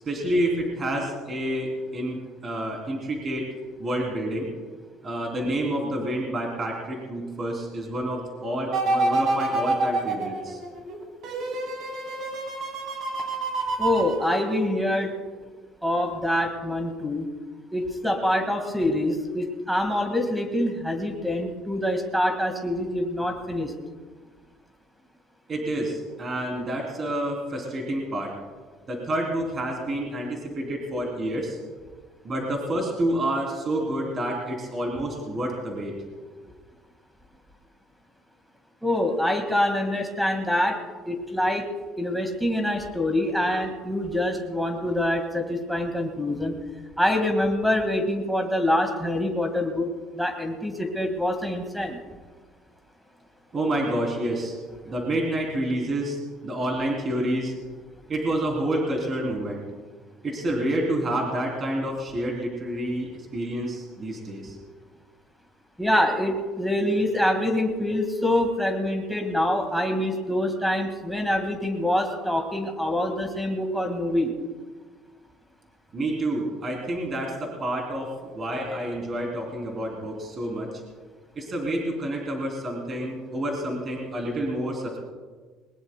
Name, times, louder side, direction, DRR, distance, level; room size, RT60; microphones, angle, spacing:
voice 1, 0.1-3.5 3.8-4.5 5.0-10.6 25.5-28.3 28.9-31.6 32.2-35.9 53.5-54.6 54.8-57.5 58.1-59.7 60.2-64.6 75.9-80.7 81.3-85.0, right 1 dB, 25° right, 0 dB, 3.1 m, -28 dB
sound 1, 8.7-15.0 15.4-15.5, right 2 dB, 50° right, 2.9 m, -28 dB
voice 2, 13.8-15.1 15.8-17.3 17.7-23.7 38.8-40.8 41.0-41.7 42.0-46.5 47.0-49.9 50.1-52.0 65.8-74.3, left 1 dB, ahead, 5 dB, 1.8 m, -25 dB
21.5 x 20.0 x 2.2 m, 1.4 s
cardioid pair, 155°, 0 cm